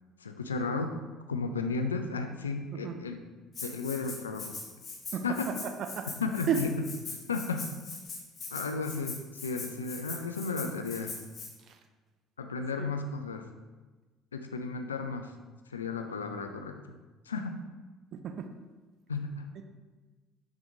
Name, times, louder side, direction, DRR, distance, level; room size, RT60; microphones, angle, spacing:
voice 1, 0.2-1.0 1.3-3.2 3.6-4.6 5.2-5.5 6.2-6.7 7.1-7.7 8.5-9.2 9.4-11.1 12.4-13.5 14.3-15.3 15.7-16.9 17.3-17.6 19.1-19.5, left 4 dB, 85° left, 6 dB, 0.3 m, -34 dB
Rattle (instrument), 3.5-11.5, left 4 dB, 40° left, 1.2 m, -41 dB
voice 2, 18.1-18.5 19.6-19.7, right 8 dB, 50° right, 6 dB, 0.4 m, -33 dB
5.9 x 3.5 x 2.6 m, 1.2 s
figure-of-eight pair, 55°, 0 cm